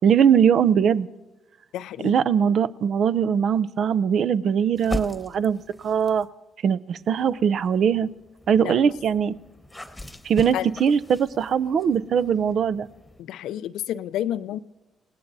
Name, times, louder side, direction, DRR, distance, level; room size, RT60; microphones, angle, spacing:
voice 1, 0.0-1.1 2.0-6.3 6.6-8.1 8.5-9.3 10.2-12.9, right 7 dB, 60° right, 16 dB, 0.5 m, -21 dB
voice 2, 1.7-2.1 8.6-8.8 10.5-10.7 13.2-14.6, left 11 dB, 85° left, 15 dB, 0.4 m, -30 dB
sound 1, 4.7-6.3 7.0-13.2, left 1 dB, 10° left, 1.2 m, -39 dB
29.0 x 18.0 x 2.7 m, 1.1 s
cardioid pair, 90°, 0 cm